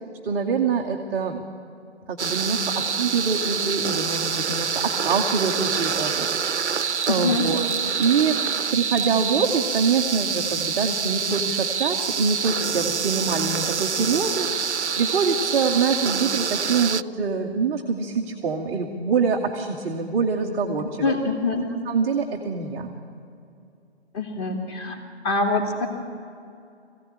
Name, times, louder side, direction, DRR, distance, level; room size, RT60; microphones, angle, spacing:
voice 1, 0.2-1.4 2.1-6.7 7.1-7.7 8.0-8.4 8.7-14.5 14.7-21.1 21.9-22.9, right 5 dB, 5° right, -4 dB, 0.5 m, -25 dB
sound 1, 2.2-17.0, right 6 dB, 90° right, 0.6 m, -26 dB
voice 2, 7.1-7.4 21.0-21.7 24.1-25.0 25.2-25.9, left 3 dB, 25° left, 3 dB, 2.4 m, -24 dB
21.5 x 15.5 x 8.6 m, 2.5 s
figure-of-eight pair, 135°, 33 cm